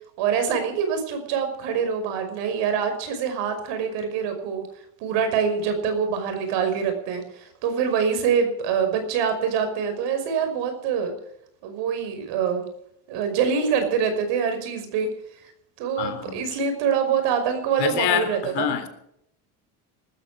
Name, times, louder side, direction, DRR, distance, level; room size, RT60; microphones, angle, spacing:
voice 1, 0.2-4.6 5.0-11.1 11.6-12.7 13.1-15.1 15.8-18.7, right 7 dB, 80° right, 7 dB, 5.6 m, -25 dB
voice 2, 16.0-16.4 17.8-18.9, left 9 dB, 65° left, 8 dB, 3.7 m, -26 dB
20.0 x 14.0 x 5.0 m, 0.73 s
cardioid pair, 115°, 43 cm